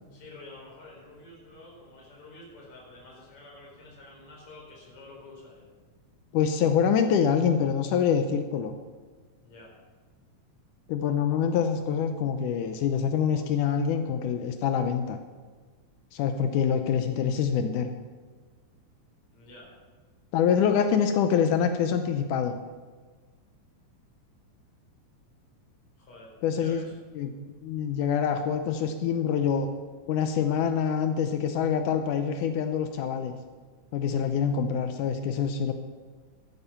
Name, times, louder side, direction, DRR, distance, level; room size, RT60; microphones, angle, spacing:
voice 1, 0.1-5.7 9.4-9.7 19.3-19.7 26.0-26.9, left 2 dB, 45° left, -3 dB, 5.0 m, -49 dB
voice 2, 6.3-8.7 10.9-15.2 16.1-17.9 20.3-22.6 26.4-26.9 27.2-27.3 27.6-29.7 30.1-33.3 33.9-35.7, left 7 dB, 80° left, 7 dB, 2.3 m, -25 dB
13.5 x 11.0 x 5.8 m, 1.4 s
omnidirectional pair, 3.6 m